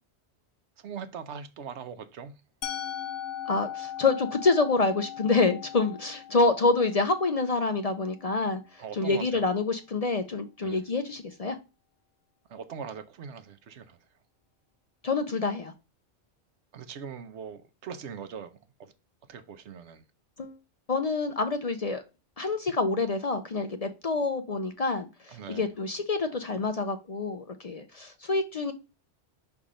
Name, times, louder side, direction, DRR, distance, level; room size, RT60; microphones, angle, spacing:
voice 1, 0.8-2.3 8.8-9.5 10.6-10.8 12.5-14.0 16.7-18.5 18.8-18.9 19.3-20.0 25.3-25.7, right 6 dB, 75° right, 1.0 m, -41 dB
Musical instrument, 2.6-8.5, left 10 dB, 85° left, 1.0 m, -39 dB
voice 2, 3.5-8.6 8.9-11.6 15.0-15.7 20.4-20.6 20.9-22.0 22.4-28.7, left 3 dB, 45° left, 0.5 m, -27 dB
5.6 x 3.5 x 4.9 m
omnidirectional pair, 1.2 m